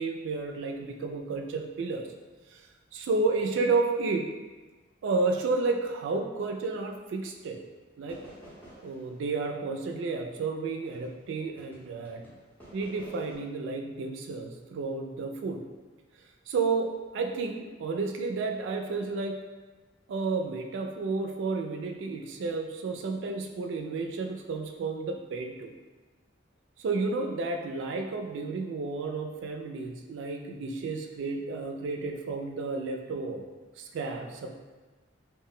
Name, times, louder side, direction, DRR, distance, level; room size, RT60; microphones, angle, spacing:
voice 1, 0.0-2.1 2.5-2.7 2.9-4.3 5.0-7.6 8.0-8.2 8.8-12.3 12.7-15.6 16.5-19.4 20.1-25.7 26.8-33.4 33.8-34.6, right 3 dB, 70° right, 4 dB, 0.3 m, -31 dB
sound 1, 7.4-7.6 8.1-11.3 11.6-13.4, right 1 dB, 10° left, 0.6 m, -52 dB
2.1 x 2.1 x 3.7 m, 1.3 s
head